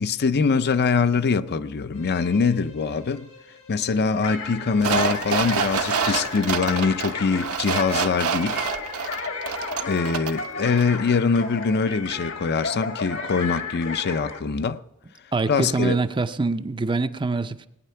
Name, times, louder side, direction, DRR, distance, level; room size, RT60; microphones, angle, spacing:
voice 1, 0.0-3.3 3.7-8.6 9.9-14.8 15.5-16.0, left 5 dB, 50° left, 0.5 m, -23 dB
Bowed string instrument, 1.9-9.6, left 3 dB, 85° left, 6.8 m, -49 dB
sound 1, 4.2-14.4, left 4 dB, 65° left, 1.5 m, -33 dB
sound 2, 4.8-10.5 10.8-10.9, right 6 dB, 70° right, 0.9 m, -27 dB
voice 2, 15.3-17.7, right 3 dB, 20° right, 0.5 m, -24 dB
18.5 x 9.3 x 5.7 m
head